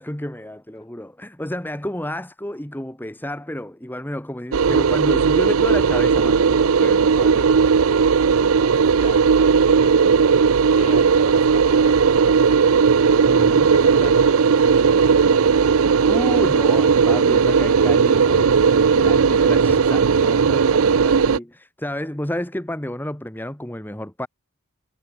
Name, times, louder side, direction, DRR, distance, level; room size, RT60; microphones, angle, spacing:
voice 1, 0.0-7.6 13.3-13.7 16.0-24.3, left 1 dB, 10° left, 1.3 m, -31 dB
sound 1, 4.5-21.4, right 5 dB, 70° right, 0.5 m, -16 dB
voice 2, 8.4-10.5 10.7-12.9 13.3-13.4 13.7-15.5, left 2 dB, 25° left, 7.0 m, -41 dB
head